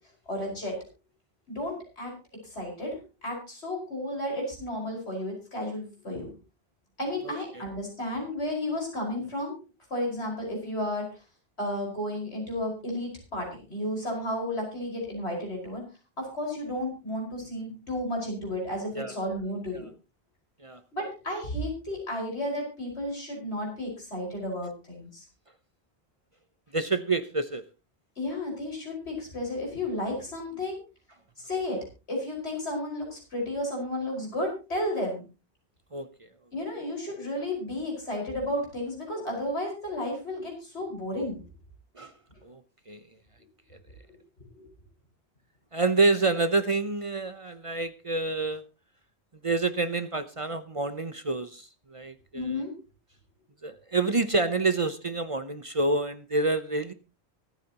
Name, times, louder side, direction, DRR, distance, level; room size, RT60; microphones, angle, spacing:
voice 1, 0.3-0.8 1.5-2.1 2.4-6.3 7.0-9.5 9.9-11.1 11.6-15.8 16.2-19.9 20.9-25.3 28.2-30.8 31.4-31.8 32.1-35.3 36.5-41.4 44.1-44.2 44.5-44.6 52.3-52.7, left 1 dB, 80° left, -1 dB, 5.5 m, -33 dB
voice 2, 26.7-27.6 35.9-36.1 42.0-42.1 42.4-42.6 42.9-43.0 45.7-48.6 49.4-52.6 53.6-56.9, right 3 dB, 35° right, 11 dB, 0.7 m, -28 dB
24.0 x 9.1 x 2.9 m, 0.31 s
omnidirectional pair, 1.1 m